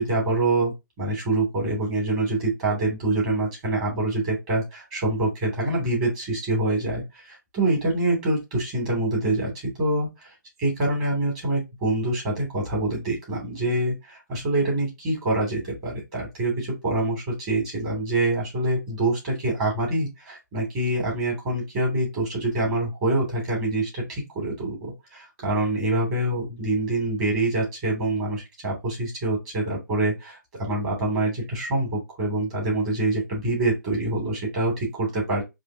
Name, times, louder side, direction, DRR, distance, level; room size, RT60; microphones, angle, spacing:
voice 1, 0.0-10.3 10.6-35.4, right 2 dB, 25° right, -2 dB, 2.8 m, -25 dB
4.8 x 2.7 x 2.7 m, 0.22 s
figure-of-eight pair, 135°, 10 cm